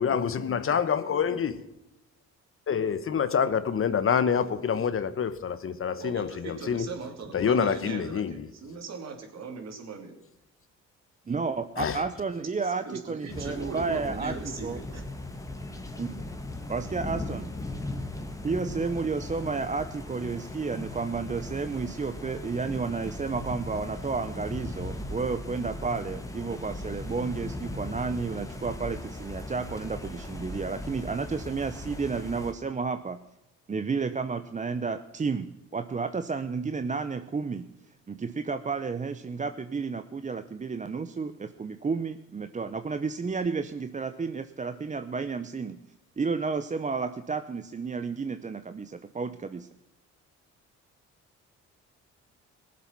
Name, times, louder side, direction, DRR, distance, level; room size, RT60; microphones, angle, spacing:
voice 1, 0.0-1.6 2.7-6.9 7.3-8.5 11.8-12.0, left 7 dB, 45° left, 1.0 m, -27 dB
voice 2, 5.8-10.2 12.6-15.0, right 5 dB, 60° right, 3.0 m, -39 dB
voice 3, 11.3-14.3 14.6-14.8 16.0-16.3 16.7-17.5 18.4-33.2 33.7-37.7 38.1-45.8 46.2-49.7, right 4 dB, 25° right, 0.7 m, -31 dB
sound 1, 13.3-32.5, left 2 dB, 10° left, 1.8 m, -38 dB
19.0 x 7.6 x 5.9 m
cardioid pair, 90°, 30 cm